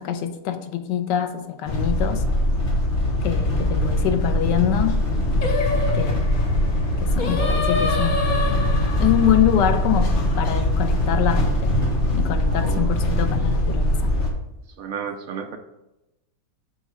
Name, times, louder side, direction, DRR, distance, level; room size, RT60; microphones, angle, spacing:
voice 1, 0.0-2.2 3.2-5.0 5.9-6.3 7.0-8.7 9.0-11.7 12.1-14.1, left 10 dB, 90° left, 1.3 m, -25 dB
sound 1, 1.7-14.3, left 1 dB, 45° left, 1.4 m, -22 dB
Singing, 5.4-10.7, left 2 dB, 75° left, 0.4 m, -28 dB
voice 2, 12.4-13.0 14.8-15.6, right 7 dB, 70° right, 0.9 m, -33 dB
8.0 x 3.2 x 4.9 m
omnidirectional pair, 1.8 m